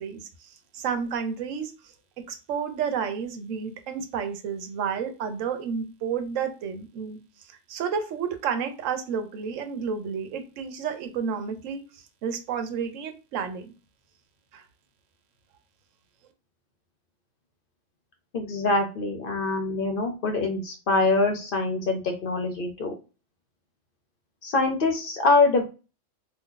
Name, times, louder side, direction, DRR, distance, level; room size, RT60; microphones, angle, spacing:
voice 1, 0.0-1.9 2.3-13.7 14.5-14.6, right 7 dB, 85° right, 8 dB, 1.0 m, -31 dB
voice 2, 18.3-22.9 24.4-25.6, left 3 dB, 55° left, 4 dB, 0.7 m, -24 dB
2.6 x 2.3 x 3.7 m, 0.32 s
omnidirectional pair, 1.3 m